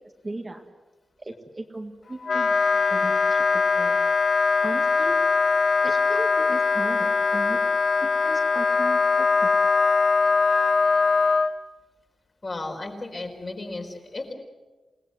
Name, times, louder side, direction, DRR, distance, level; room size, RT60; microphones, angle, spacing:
voice 1, 0.2-0.6 1.2-4.0 4.6-5.2 5.8-7.6 8.0-9.5, right 2 dB, 25° right, 3 dB, 2.0 m, -37 dB
Wind instrument woodwind instrument, 2.2-11.5, left 4 dB, 60° left, 1.2 m, -21 dB
voice 2, 12.4-14.3, left 2 dB, 35° left, 2 dB, 4.6 m, -34 dB
28.5 x 18.0 x 8.0 m, 1.3 s
wide cardioid pair, 130°, 0 cm